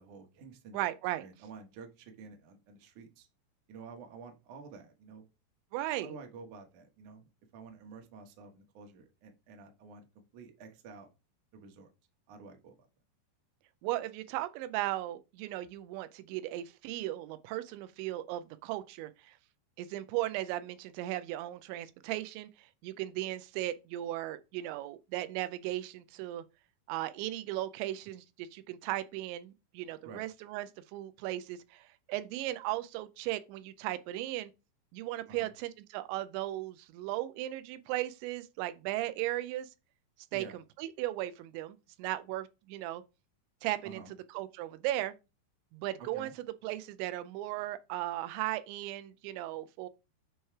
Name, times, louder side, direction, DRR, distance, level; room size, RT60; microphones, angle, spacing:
voice 1, 0.0-0.8 1.2-3.3 3.7-5.2 6.0-7.3 7.5-10.1 10.3-11.1 11.5-11.9 12.3-12.9 30.0-30.3 35.3-35.5 40.3-40.6 43.8-44.1 46.1-46.3, right 5 dB, 65° right, 2.0 m, -50 dB
voice 2, 0.7-1.3 5.7-6.1 13.8-19.4 19.8-26.4 26.9-34.5 34.9-39.7 40.3-40.4 40.8-43.0 43.6-44.0 44.3-45.1 45.7-46.3 46.6-49.9, right 15 dB, 85° right, 2.8 m, -36 dB
9.2 x 3.2 x 4.6 m
omnidirectional pair, 5.1 m